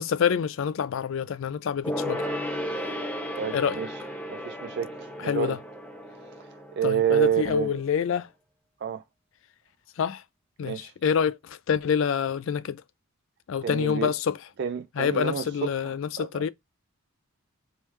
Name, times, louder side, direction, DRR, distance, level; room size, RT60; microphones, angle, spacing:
voice 1, 0.0-2.2 3.5-3.8 5.2-5.6 6.8-8.3 10.0-10.2 10.6-12.8 13.5-14.4 15.0-16.5, left 7 dB, 60° left, 0.3 m, -27 dB
Gong, 1.8-7.7 8.0-8.1, equal, 5° left, 0.7 m, -34 dB
voice 2, 3.4-3.9 4.3-5.6 6.8-7.8 8.8-9.0 10.6-10.9 13.6-14.1 14.6-15.7 16.2-16.4, right 9 dB, 50° right, 0.3 m, -28 dB
3.5 x 3.1 x 3.1 m
head